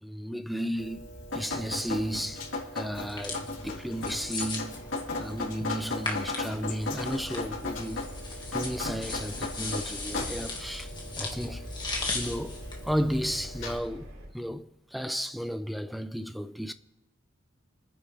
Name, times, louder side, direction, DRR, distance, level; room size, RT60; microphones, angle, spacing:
voice 1, 0.0-4.8 5.2-8.1 8.5-11.7 12.1-16.7, equal, ahead, 0.4 m, -34 dB
Drip, 0.8-13.8, left 3 dB, 80° left, 3.6 m, -37 dB
sound 1, 3.0-13.7, left 3 dB, 25° left, 1.8 m, -39 dB
Engine, 7.0-14.3, equal, 80° right, 2.8 m, -45 dB
30.0 x 10.0 x 3.4 m
head